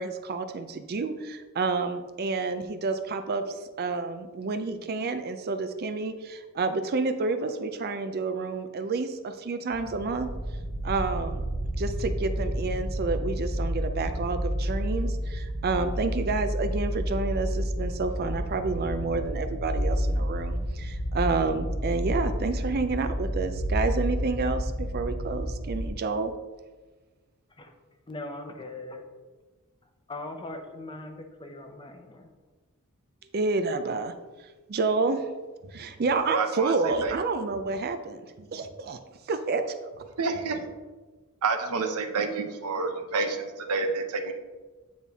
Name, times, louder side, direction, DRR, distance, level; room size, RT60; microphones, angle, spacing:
voice 1, 0.0-10.3 10.8-11.4 11.8-26.3 33.3-34.1 34.7-35.3 35.7-38.3 38.5-39.0 39.3-39.8, right 3 dB, 45° right, 9 dB, 0.5 m, -29 dB
sound 1, 9.7-25.9, equal, 50° left, 0.9 m, -30 dB
voice 2, 28.1-29.0 30.1-32.3, left 2 dB, 20° left, 5 dB, 0.7 m, -40 dB
voice 3, 36.3-36.7 37.0-37.1 40.2-40.7 41.4-44.3, right 4 dB, 85° right, 6 dB, 0.7 m, -29 dB
8.6 x 4.2 x 3.5 m, 1.3 s
head